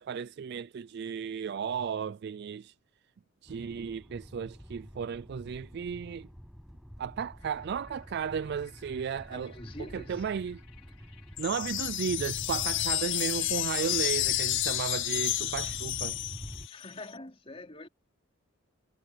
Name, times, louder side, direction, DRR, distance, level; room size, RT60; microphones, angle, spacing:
voice 1, 0.0-2.7 3.4-6.3 7.0-9.5 9.9-10.6 11.4-16.2, right 7 dB, 50° right, 0.3 m, -34 dB
sound 1, 3.5-16.7, equal, ahead, 6.3 m, -46 dB
sound 2, 7.4-17.1, left 10 dB, 85° left, 5.2 m, -60 dB
voice 2, 9.3-10.3 16.7-17.9, left 2 dB, 25° left, 4.1 m, -45 dB
sound 3, 11.4-16.8, left 14 dB, 55° left, 0.8 m, -31 dB
head